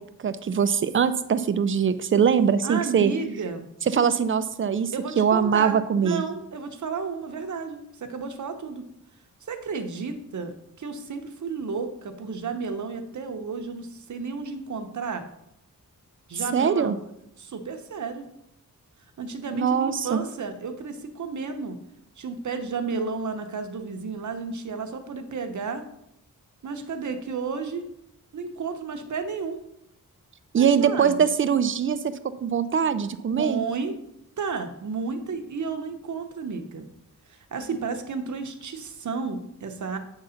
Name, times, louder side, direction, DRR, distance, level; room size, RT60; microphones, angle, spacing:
voice 1, 0.2-3.1 3.9-6.2 16.5-17.0 19.5-20.2 30.5-32.1 32.4-33.6, right 7 dB, 40° right, 12 dB, 0.4 m, -22 dB
voice 2, 2.6-3.7 4.9-8.9 9.5-15.2 16.3-17.0 17.4-18.2 19.2-21.8 22.2-25.9 26.6-27.9 28.3-29.6 30.6-31.2 33.3-34.0 34.4-36.9 37.3-40.0, right 4 dB, 55° right, 6 dB, 0.8 m, -32 dB
8.1 x 3.9 x 5.6 m, 0.81 s
wide cardioid pair, 165°, 34 cm